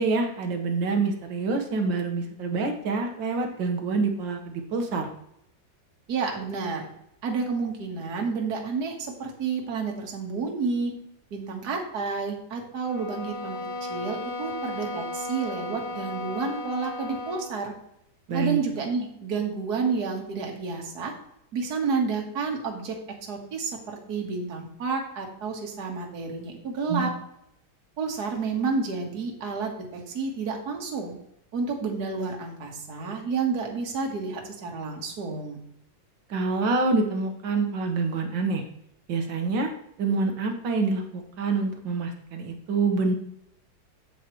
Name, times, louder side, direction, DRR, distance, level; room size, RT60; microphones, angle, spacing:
voice 1, 0.0-5.1 18.3-18.6 26.9-27.1 36.3-38.6 39.1-39.7 40.0-43.1, right 3 dB, 85° right, 3 dB, 2.0 m, -26 dB
voice 2, 6.1-6.9 7.2-10.9 11.3-13.6 13.9-17.7 18.3-21.1 21.5-23.0 23.3-27.1 28.0-31.2 31.5-35.6, right 4 dB, 60° right, 1 dB, 2.0 m, -30 dB
sound 1, 12.8-17.6, left 1 dB, 75° left, 1.9 m, -35 dB
8.5 x 8.3 x 3.1 m, 0.76 s
omnidirectional pair, 2.0 m